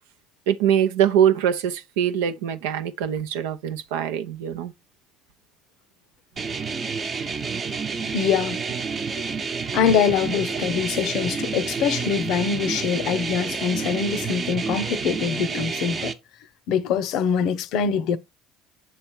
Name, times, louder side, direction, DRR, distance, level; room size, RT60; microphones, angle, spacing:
voice 1, 0.5-4.7 7.9-8.1, right 9 dB, 80° right, 0.6 m, -23 dB
sound 1, 6.4-16.1, right 5 dB, 40° right, 0.9 m, -29 dB
voice 2, 8.1-8.6 9.7-16.1 16.7-18.2, left 7 dB, 65° left, 0.6 m, -24 dB
6.7 x 3.2 x 4.5 m
hypercardioid pair, 70°, 0 cm